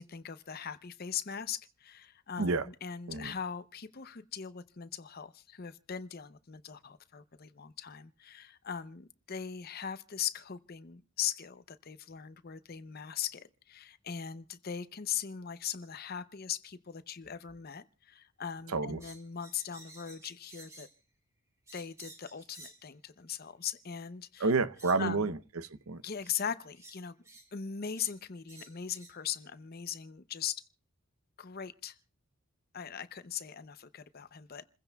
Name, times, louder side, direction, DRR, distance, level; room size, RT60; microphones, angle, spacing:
voice 1, 0.0-20.9 21.7-24.5 25.0-25.3 26.0-27.1 27.5-30.6 31.4-32.0 32.7-34.7, left 8 dB, 45° left, 0.7 m, -40 dB
voice 2, 18.7-19.0 24.4-26.0, right 3 dB, 85° right, 0.7 m, -30 dB
sound 1, 19.0-21.0 21.7-22.9 24.0-24.1 24.8-25.0 26.2-26.4 26.7-27.5 28.0-28.2 28.5-29.2, right 2 dB, 15° right, 1.9 m, -53 dB
28.5 x 15.5 x 2.3 m
head